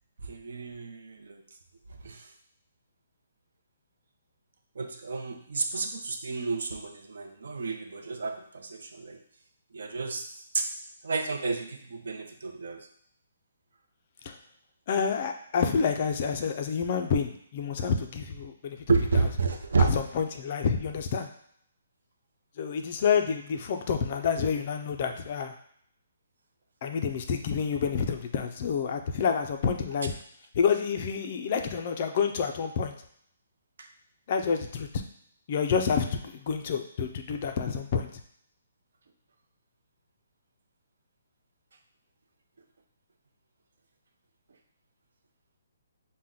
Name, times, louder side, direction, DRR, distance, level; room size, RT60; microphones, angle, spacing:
voice 1, 0.2-1.4 2.0-2.2 4.8-9.2 9.7-10.2 10.5-10.7 11.0-12.9 18.9-19.9 33.8-33.9, right 4 dB, 60° right, 5 dB, 0.6 m, -30 dB
voice 2, 14.9-19.3 19.8-21.3 22.6-25.5 26.8-30.1 30.6-32.9 34.3-34.9 35.5-38.1, left 6 dB, 30° left, 5 dB, 0.3 m, -28 dB
5.7 x 2.1 x 3.7 m, 0.66 s
hypercardioid pair, 175°, 0 cm